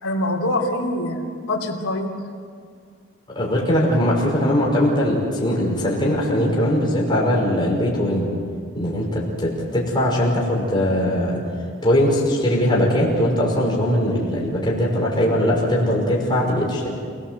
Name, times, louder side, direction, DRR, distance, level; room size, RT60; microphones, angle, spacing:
voice 1, 0.0-2.1, left 1 dB, 85° left, -1 dB, 3.1 m, -24 dB
voice 2, 3.3-8.3 8.7-11.4 11.8-16.9, equal, 20° left, -3 dB, 5.8 m, -20 dB
29.5 x 18.0 x 7.9 m, 2.2 s
head